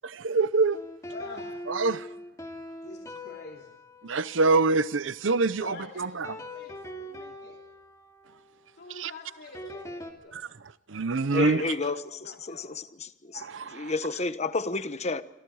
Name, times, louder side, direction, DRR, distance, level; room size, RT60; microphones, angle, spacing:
voice 1, 0.1-0.8 1.8-2.0 4.0-5.7 9.0-9.1 10.9-11.6 13.4-13.9, right 3 dB, 80° right, 0.8 m, -24 dB
sound 1, 0.7-5.6 6.2-10.1, left 1 dB, 15° left, 2.8 m, -43 dB
voice 2, 1.0-1.5 2.7-3.8 5.6-7.6 8.7-10.5 11.2-12.8, left 2 dB, 60° left, 3.2 m, -46 dB
voice 3, 11.3-13.4 13.7-15.2, left 3 dB, 35° left, 1.1 m, -31 dB
28.5 x 26.5 x 4.9 m
head